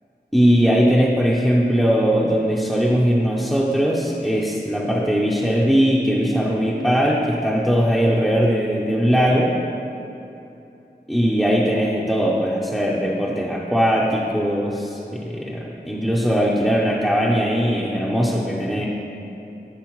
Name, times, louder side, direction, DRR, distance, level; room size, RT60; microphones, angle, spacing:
voice 1, 0.3-9.5 11.1-18.9, equal, ahead, -5 dB, 0.6 m, -20 dB
12.0 x 5.0 x 3.1 m, 2.9 s
wide cardioid pair, 65°, 18 cm